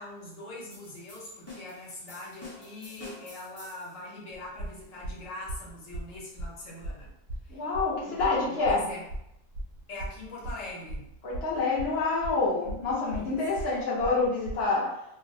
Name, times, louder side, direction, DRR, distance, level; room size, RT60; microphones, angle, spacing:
voice 1, 0.0-7.1 7.4-7.7 8.0-9.0 9.9-11.1 13.1-13.4, left 2 dB, 80° left, -4 dB, 1.1 m, -42 dB
sound 1, 0.7-4.0, left 2 dB, 15° left, 0.5 m, -47 dB
sound 2, 4.3-14.7, right 1 dB, 85° right, 1.0 m, -38 dB
voice 2, 7.5-8.8 11.2-14.9, left 3 dB, 60° left, -7 dB, 0.8 m, -27 dB
2.5 x 2.0 x 2.6 m, 0.80 s
omnidirectional pair, 1.3 m